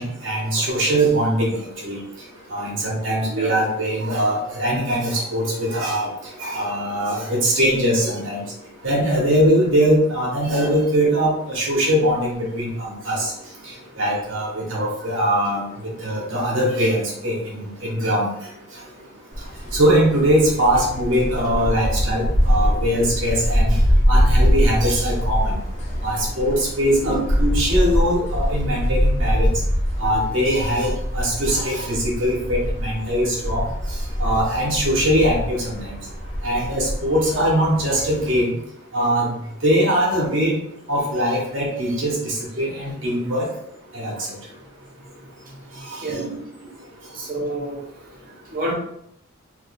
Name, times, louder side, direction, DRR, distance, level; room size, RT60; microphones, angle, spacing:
voice 1, 0.0-1.6 1.8-2.0 2.5-6.1 6.4-8.4 8.8-13.3 14.0-15.7 16.0-18.3 19.7-23.8 24.1-25.5 26.0-29.6 30.0-33.6 34.2-35.8 36.4-38.5 38.9-39.3 39.6-40.5 40.9-43.5 43.9-44.1 45.9-46.3, equal, 70° right, -4 dB, 1.0 m, -21 dB
sound 1, 19.3-38.4, equal, 35° left, 0.8 m, -23 dB
voice 2, 47.1-47.8 48.5-48.7, right 1 dB, 45° right, -2 dB, 0.8 m, -28 dB
2.6 x 2.3 x 4.0 m, 0.74 s
head